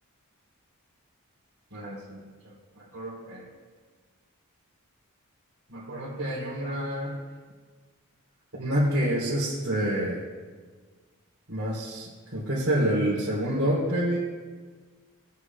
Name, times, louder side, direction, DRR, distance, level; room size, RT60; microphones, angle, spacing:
voice 1, 1.7-2.3 2.8-3.4 5.7-7.2 8.6-10.2 11.5-14.2, equal, 65° right, -9 dB, 3.8 m, -28 dB
20.0 x 9.5 x 2.4 m, 1.4 s
head